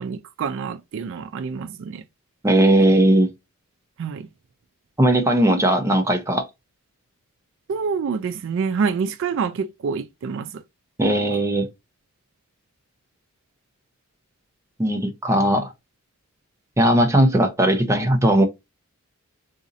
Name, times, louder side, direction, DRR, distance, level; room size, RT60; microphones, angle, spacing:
voice 1, 0.0-2.0 4.0-4.3 7.7-10.6, right 5 dB, 60° right, 0.3 m, -27 dB
voice 2, 2.4-3.3 5.0-6.5 11.0-11.7 14.8-15.7 16.8-18.4, right 1 dB, 15° right, 0.6 m, -18 dB
4.0 x 2.6 x 2.6 m
head